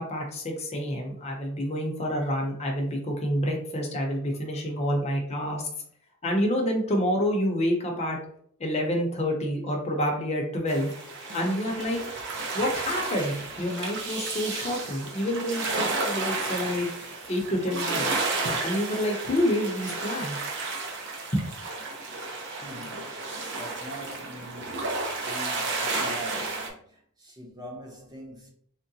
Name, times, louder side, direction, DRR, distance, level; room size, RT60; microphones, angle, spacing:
voice 1, 0.0-5.7 6.2-8.2 8.6-10.9 11.3-12.0 12.5-16.9 17.3-18.2 18.6-20.4 21.3-21.5, equal, 30° left, 0.6 m, -28 dB
sound 1, 10.7-26.7, right 3 dB, 55° right, 0.6 m, -32 dB
voice 2, 22.5-28.5, equal, 20° right, 0.6 m, -44 dB
3.7 x 2.1 x 2.7 m
head